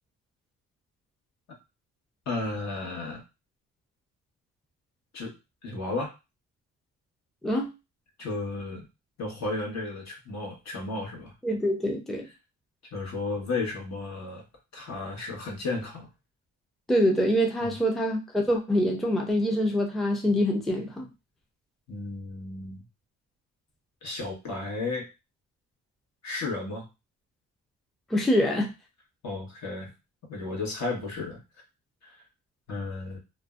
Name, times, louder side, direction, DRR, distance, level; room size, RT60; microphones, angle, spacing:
voice 1, 2.3-3.2 5.1-5.3 5.6-6.1 8.2-8.8 9.2-11.3 12.2-12.3 12.9-14.4 14.7-16.1 17.6-17.8 21.9-22.8 24.0-25.1 26.2-26.9 29.2-29.9 30.3-31.4 32.0-32.2 32.7-33.2, left 3 dB, 65° left, -1 dB, 1.1 m, -33 dB
voice 2, 11.4-12.3 16.9-21.1 28.1-28.7, equal, ahead, 2 dB, 0.4 m, -25 dB
2.5 x 2.1 x 2.3 m, 0.26 s
cardioid pair, 90°, 30 cm